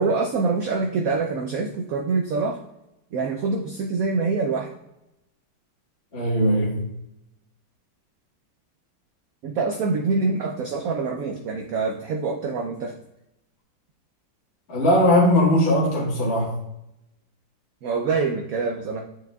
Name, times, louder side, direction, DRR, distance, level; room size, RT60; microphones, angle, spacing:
voice 1, 0.0-2.6 3.1-4.7 9.4-12.9 17.8-19.0, right 4 dB, 65° right, 1 dB, 0.9 m, -25 dB
voice 2, 6.1-6.9 14.7-16.5, left 1 dB, 35° left, -5 dB, 1.6 m, -19 dB
8.7 x 6.1 x 2.3 m, 0.87 s
omnidirectional pair, 2.1 m